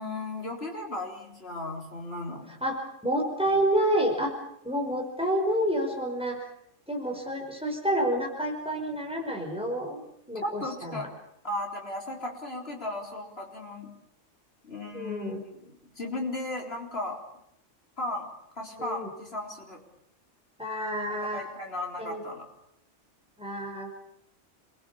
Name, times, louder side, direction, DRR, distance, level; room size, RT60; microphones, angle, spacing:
voice 1, 0.0-2.5 10.4-11.1 11.4-13.9 14.6-15.3 15.6-17.2 18.0-18.3 18.6-19.8 21.1-22.5, left 2 dB, 55° left, 0 dB, 4.3 m, -35 dB
voice 2, 3.0-4.3 4.6-6.4 6.9-10.0 10.3-11.1 14.9-15.4 18.8-19.1 20.6-21.4 22.0-22.2 23.4-23.9, right 1 dB, 5° right, 1 dB, 5.5 m, -29 dB
28.0 x 21.0 x 7.1 m, 0.74 s
omnidirectional pair, 1.3 m